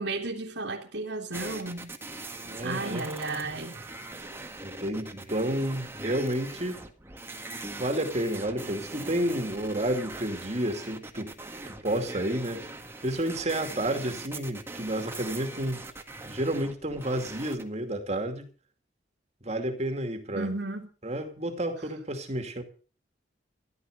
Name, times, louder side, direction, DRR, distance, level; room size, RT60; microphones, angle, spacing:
voice 1, 0.0-1.9 2.6-3.7 20.3-20.9, right 2 dB, 70° right, 2.6 m, -33 dB
sound 1, 1.3-17.6, right 2 dB, 15° right, 1.8 m, -41 dB
voice 2, 2.4-3.1 4.6-6.8 7.8-11.3 11.7-12.7 13.0-15.8 16.2-18.4 19.4-20.5 21.0-22.6, right 1 dB, 35° right, 2.5 m, -30 dB
15.0 x 12.0 x 6.5 m
head